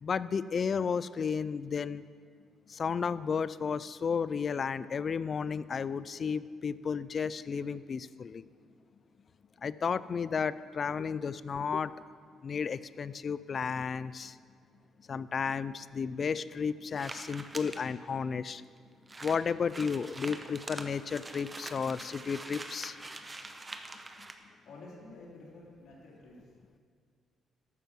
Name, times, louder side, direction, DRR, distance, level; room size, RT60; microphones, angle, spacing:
voice 1, 0.0-2.0 2.7-8.4 9.6-11.9 12.4-14.4 15.1-18.6 19.2-23.0 24.2-24.3, left 6 dB, 45° left, 16 dB, 0.4 m, -33 dB
sound 1, 16.9-17.8 18.5-18.6 18.8-18.9 19.1-24.3, right 2 dB, 20° right, 0.9 m, -44 dB
voice 2, 24.6-26.4, left 2 dB, 65° left, -4 dB, 3.4 m, -50 dB
12.5 x 5.7 x 7.5 m, 2.1 s
cardioid pair, 90°, 0 cm